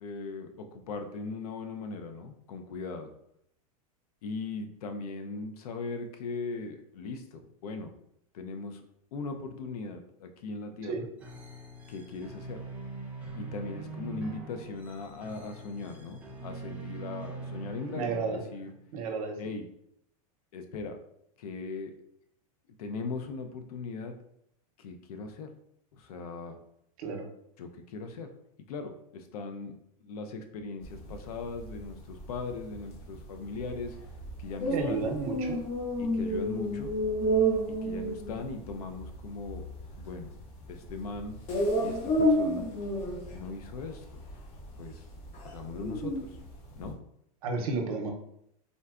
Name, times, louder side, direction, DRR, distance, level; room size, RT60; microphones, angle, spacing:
voice 1, 0.0-3.1 4.2-7.9 8.3-8.8 9.1-11.0 11.9-12.6 13.3-18.7 19.4-19.6 20.5-21.0 21.4-21.9 22.8-24.2 24.8-25.5 25.9-26.6 27.6-28.3 28.7-34.0 34.4-35.1 36.0-36.9 37.7-39.6 39.9-40.3 40.7-41.4 41.8-42.7 43.3-44.2 44.8-45.0 45.4-46.4 46.7-47.0, left 4 dB, 80° left, 7 dB, 0.5 m, -39 dB
sound 1, 11.2-18.9, right 3 dB, 10° right, 0.5 m, -43 dB
voice 2, 17.9-18.4 18.9-19.3 27.0-27.3 34.7-35.6 47.4-48.1, right 4 dB, 75° right, 2 dB, 0.7 m, -32 dB
sound 2, 30.8-46.9, right 1 dB, 35° left, 0.7 m, -31 dB
3.7 x 2.2 x 2.4 m, 0.73 s
supercardioid pair, 135°, 19 cm